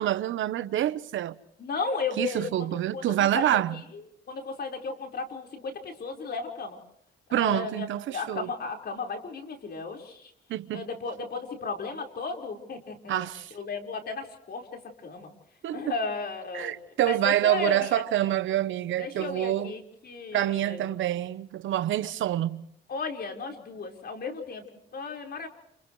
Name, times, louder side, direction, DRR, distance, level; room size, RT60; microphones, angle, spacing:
voice 1, 0.0-1.4 2.2-3.8 7.3-8.5 10.5-10.9 13.1-13.5 15.6-16.0 16.5-19.7 20.3-22.6, right 13 dB, 75° right, 1.0 m, -27 dB
voice 2, 1.6-3.8 4.3-6.8 7.3-10.3 10.7-13.3 13.5-15.3 15.7-16.7 17.0-18.0 19.0-21.0 22.9-25.5, left 4 dB, 55° left, 4.9 m, -35 dB
29.5 x 29.0 x 3.2 m
cardioid pair, 90°, 20 cm